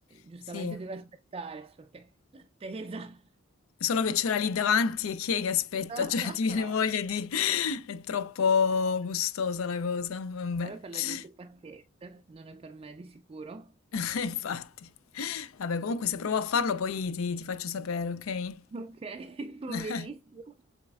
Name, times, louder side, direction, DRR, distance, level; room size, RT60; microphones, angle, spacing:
voice 1, 0.1-3.3 5.9-6.8 10.6-13.8 18.7-20.6, right 3 dB, 25° right, 0.3 m, -42 dB
voice 2, 3.8-11.2 13.9-18.6 19.7-20.1, left 6 dB, 80° left, 0.4 m, -29 dB
7.1 x 3.4 x 2.2 m
head